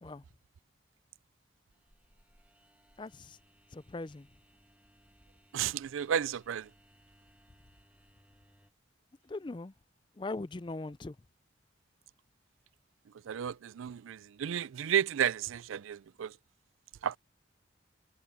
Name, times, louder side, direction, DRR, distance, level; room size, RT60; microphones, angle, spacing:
sound 1, 1.7-8.7, equal, 10° right, 1.7 m, -65 dB
voice 1, 3.0-3.4 3.7-4.3 9.3-9.7 10.2-11.2, left 2 dB, 25° left, 0.4 m, -40 dB
voice 2, 5.5-6.7 13.2-16.4 17.0-17.2, right 9 dB, 85° right, 0.4 m, -32 dB
head